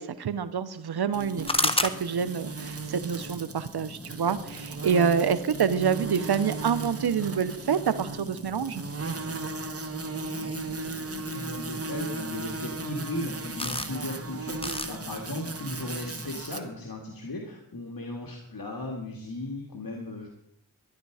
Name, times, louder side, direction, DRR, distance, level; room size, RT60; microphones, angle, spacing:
voice 1, 0.0-8.8, right 7 dB, 80° right, 13 dB, 0.8 m, -27 dB
sound 1, 1.1-16.6, right 3 dB, 40° right, 1.2 m, -37 dB
sound 2, 1.5-16.4, left 2 dB, 15° left, 1.1 m, -37 dB
voice 2, 10.5-20.3, left 1 dB, 65° left, 0 dB, 2.3 m, -37 dB
13.0 x 11.5 x 4.8 m, 0.71 s
cardioid pair, 45°, 38 cm